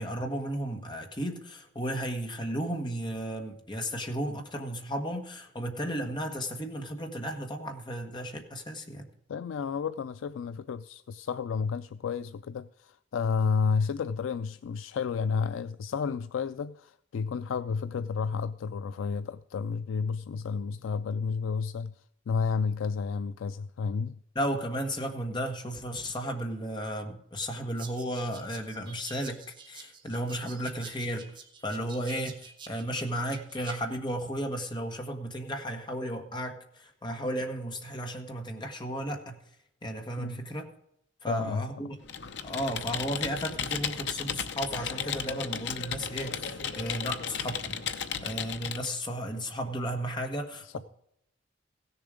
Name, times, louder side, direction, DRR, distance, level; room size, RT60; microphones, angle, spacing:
voice 1, 0.0-9.1 24.3-39.4 39.8-40.7 41.2-42.0 42.4-50.8, equal, 25° left, 1.4 m, -34 dB
voice 2, 9.3-24.2 40.2-40.4 41.3-41.7 50.6-50.8, left 5 dB, 90° left, 0.4 m, -31 dB
sound 1, 27.8-33.8, right 6 dB, 25° right, 1.6 m, -48 dB
Computer keyboard, 42.0-48.9, left 7 dB, 60° left, 0.8 m, -35 dB
16.0 x 7.1 x 5.0 m
head